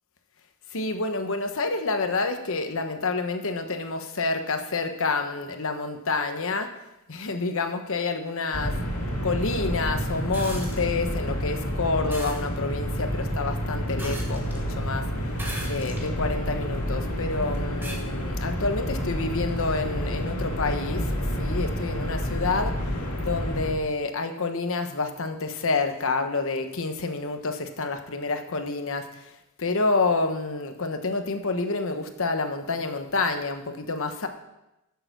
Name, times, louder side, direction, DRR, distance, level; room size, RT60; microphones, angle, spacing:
voice 1, 0.7-6.7 7.1-8.8 9.2-15.0 15.6-22.8 23.2-34.3, left 3 dB, 65° left, 7 dB, 1.1 m, -28 dB
sound 1, 8.5-23.7, equal, 85° left, 2.3 m, -29 dB
sound 2, 10.3-10.8 12.1-12.4 14.0-14.6 15.3-16.1 16.7-16.8 17.8-18.0 19.5-19.6, equal, 10° right, 1.9 m, -38 dB
10.5 x 6.9 x 6.7 m, 0.94 s
head